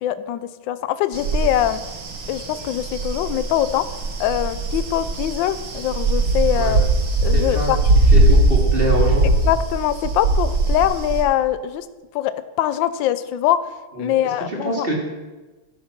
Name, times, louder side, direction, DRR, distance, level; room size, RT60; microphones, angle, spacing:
voice 1, 0.0-1.8 2.3-3.9 4.2-6.8 7.2-7.8 9.4-11.9 12.1-14.9, left 12 dB, 70° left, 13 dB, 1.2 m, -23 dB
sound 1, 1.1-11.2, right 2 dB, 70° right, 2.3 m, -20 dB
voice 2, 7.3-7.7 8.1-9.3 14.0-14.1 14.6-15.0, equal, 25° right, -2 dB, 2.7 m, -24 dB
12.0 x 9.4 x 6.0 m, 1.2 s
omnidirectional pair, 2.3 m